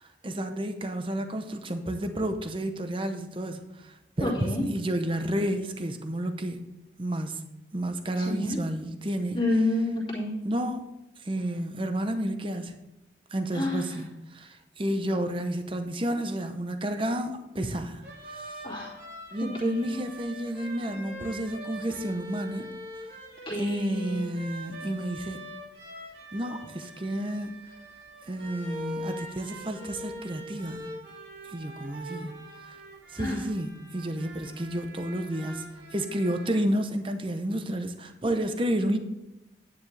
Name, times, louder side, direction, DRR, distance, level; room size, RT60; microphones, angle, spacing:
voice 1, 0.0-6.7 7.0-7.4 7.7-9.4 10.4-10.8 11.2-12.7 13.3-18.6 19.3-22.7 23.6-25.4 26.3-27.5 28.2-30.9 31.5-32.4 32.7-32.8 33.1-35.7 35.9-39.0, right 1 dB, 30° right, 7 dB, 0.8 m, -31 dB
voice 2, 4.2-4.6 8.2-8.6 9.3-10.4 13.5-13.9 18.6-18.9 19.6-19.8 23.5-24.1 33.2-33.4, left 1 dB, 30° left, -6 dB, 2.6 m, -29 dB
sound 1, 18.0-36.6, equal, 75° right, 2.2 m, -43 dB
10.0 x 9.3 x 3.3 m, 0.95 s
head